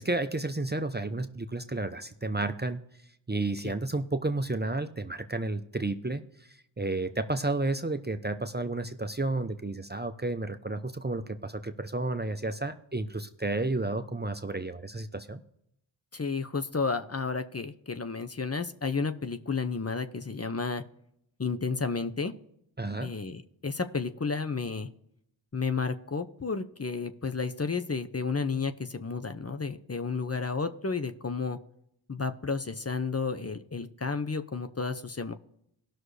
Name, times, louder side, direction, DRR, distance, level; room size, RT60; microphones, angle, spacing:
voice 1, 0.0-2.8 3.3-15.4 22.8-23.1, right 2 dB, 20° right, 8 dB, 0.7 m, -32 dB
voice 2, 16.1-20.8 21.4-22.3 23.0-24.9 25.5-31.6 32.1-35.3, left 4 dB, 30° left, 8 dB, 0.8 m, -32 dB
18.0 x 6.3 x 3.3 m, 0.75 s
cardioid pair, 40°, 48 cm